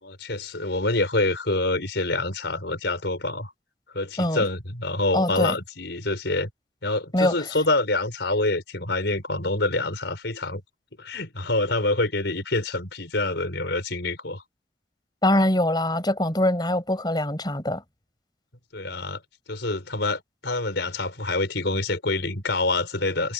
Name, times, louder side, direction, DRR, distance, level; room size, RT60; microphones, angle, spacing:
voice 1, 0.0-3.5 3.9-6.5 6.8-10.6 11.0-14.4 18.7-19.2 19.5-23.3, left 2 dB, 70° left, 4.8 m, -26 dB
voice 2, 5.1-5.5 7.1-7.3 15.2-17.8, left 1 dB, 25° left, 4.9 m, -23 dB
head